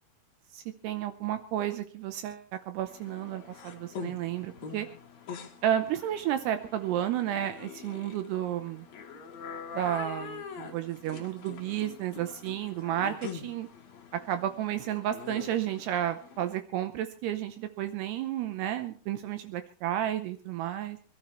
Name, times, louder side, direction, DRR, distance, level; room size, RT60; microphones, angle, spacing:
voice 1, 0.5-4.9 5.6-8.9 9.7-13.7 14.1-21.0, right 11 dB, 80° right, 9 dB, 2.9 m, -32 dB
sound 1, 2.9-16.6, left 6 dB, 55° left, 2.4 m, -44 dB
25.5 x 12.5 x 3.1 m, 0.39 s
omnidirectional pair, 4.8 m